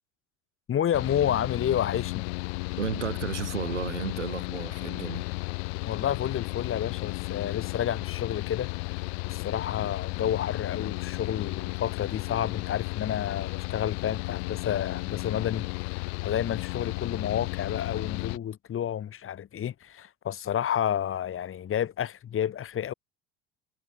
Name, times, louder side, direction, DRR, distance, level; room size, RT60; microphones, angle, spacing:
voice 1, 0.7-2.3 5.8-8.7 9.3-22.9, left 10 dB, 40° left, 2.3 m, -30 dB
Mechanical fan, 0.9-18.4, left 30 dB, 65° left, 0.8 m, -34 dB
voice 2, 2.8-5.3, right 8 dB, 90° right, 1.4 m, -33 dB
hypercardioid pair, 65°, 34 cm